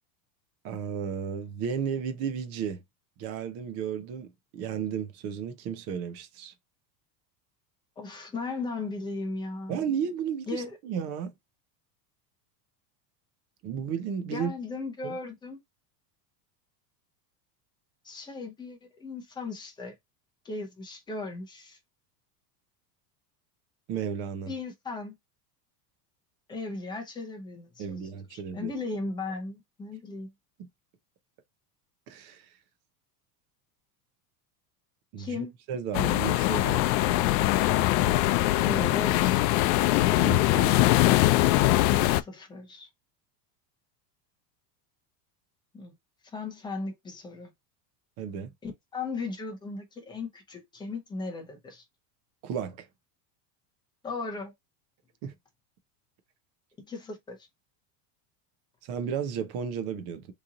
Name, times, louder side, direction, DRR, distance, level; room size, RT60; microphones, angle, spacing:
voice 1, 0.6-2.8 3.2-6.5 9.7-11.3 13.6-14.5 15.0-15.2 23.9-24.5 27.8-28.7 32.1-32.5 35.1-37.0 40.1-41.0 48.2-48.5 52.4-52.9 55.2-55.3 58.8-60.3, right 7 dB, 30° right, 0.5 m, -33 dB
voice 2, 8.0-9.9 10.5-10.8 14.3-15.6 18.0-19.9 20.4-21.8 24.5-25.1 26.5-28.0 28.3-30.3 35.2-35.5 38.6-39.4 41.9-42.9 45.7-46.0 46.3-47.5 48.6-51.8 54.0-54.5 56.9-57.4, left 3 dB, 10° left, 0.6 m, -37 dB
sound 1, 35.9-42.2, left 16 dB, 80° left, 0.5 m, -22 dB
3.0 x 2.6 x 3.6 m
supercardioid pair, 165°, 49 cm